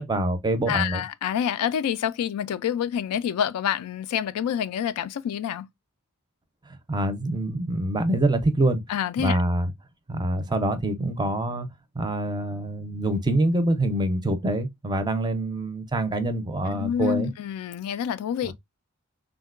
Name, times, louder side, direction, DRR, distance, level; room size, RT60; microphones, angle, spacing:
voice 1, 0.0-1.0 6.9-8.8 9.2-9.7 10.1-11.7 11.9-17.3 18.4-18.5, right 1 dB, 20° right, 0.5 m, -25 dB
voice 2, 0.7-5.7 8.9-9.4 16.7-18.5, left 9 dB, 80° left, 0.3 m, -27 dB
3.6 x 2.1 x 2.3 m
head